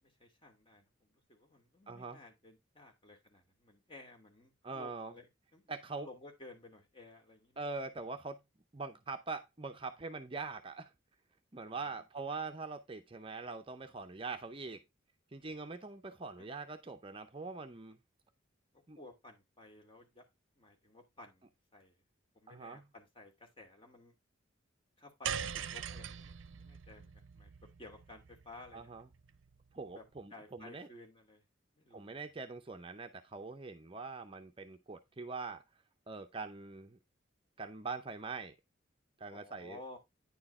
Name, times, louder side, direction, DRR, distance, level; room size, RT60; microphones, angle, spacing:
voice 1, 0.0-5.7 6.0-7.6 11.7-12.0 16.4-16.5 18.7-20.2 20.5-22.0 22.3-24.1 25.0-28.9 29.9-30.0 30.3-31.4 31.7-32.2 39.3-40.0, left 2 dB, 25° left, 2.5 m, -55 dB
voice 2, 1.9-2.2 4.6-5.1 5.7-6.1 7.6-8.4 8.7-10.9 11.5-14.8 15.3-18.0 18.9-19.0 22.5-22.8 28.7-29.0 29.7-30.9 31.9-35.6 36.1-37.0 37.6-38.5 39.2-39.8, right 4 dB, 30° right, 0.6 m, -43 dB
sound 1, 25.2-29.6, right 8 dB, 75° right, 0.6 m, -42 dB
9.7 x 4.6 x 4.2 m
head